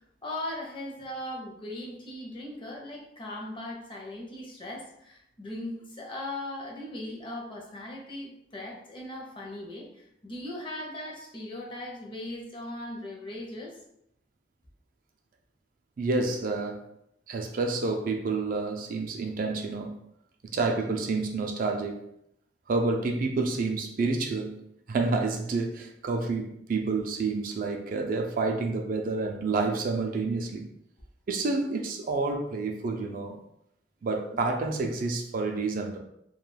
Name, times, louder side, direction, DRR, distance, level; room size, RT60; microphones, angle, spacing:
voice 1, 0.2-13.8 34.3-34.5, left 1 dB, 30° left, -2 dB, 0.6 m, -39 dB
voice 2, 16.0-16.9 17.3-20.0 20.5-22.1 22.7-30.7 31.3-33.4 34.0-36.0, right 3 dB, 50° right, 3 dB, 0.3 m, -29 dB
2.3 x 2.2 x 3.1 m, 0.76 s
head